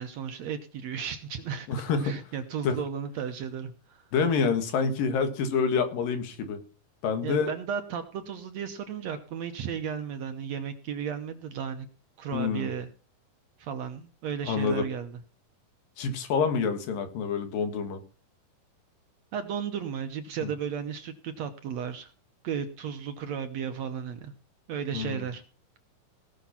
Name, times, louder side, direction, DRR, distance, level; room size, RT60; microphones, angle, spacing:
voice 1, 0.0-1.7 2.0-4.0 7.2-11.9 12.2-12.9 13.6-15.2 19.3-22.1 22.4-24.3 24.7-25.4, right 7 dB, 70° right, 8 dB, 1.8 m, -34 dB
voice 2, 1.7-2.2 2.6-2.8 4.1-6.6 7.0-7.5 12.3-12.7 14.4-14.8 16.0-18.0 20.4-20.5 24.9-25.2, left 5 dB, 80° left, 8 dB, 3.4 m, -27 dB
18.0 x 6.5 x 5.7 m, 0.37 s
omnidirectional pair, 3.9 m